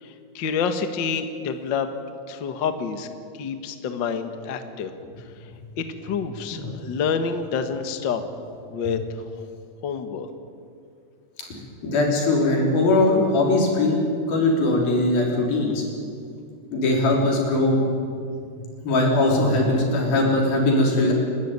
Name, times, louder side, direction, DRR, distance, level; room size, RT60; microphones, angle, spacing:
voice 1, 0.0-1.9 2.3-3.1 3.3-4.9 5.8-8.2 8.7-9.0 9.8-10.3, left 6 dB, 55° left, 8 dB, 1.4 m, -28 dB
voice 2, 11.8-14.0 14.3-15.8 16.7-17.8 18.8-21.1, left 2 dB, 90° left, -1 dB, 5.9 m, -20 dB
29.5 x 12.5 x 9.6 m, 2.4 s
omnidirectional pair, 4.1 m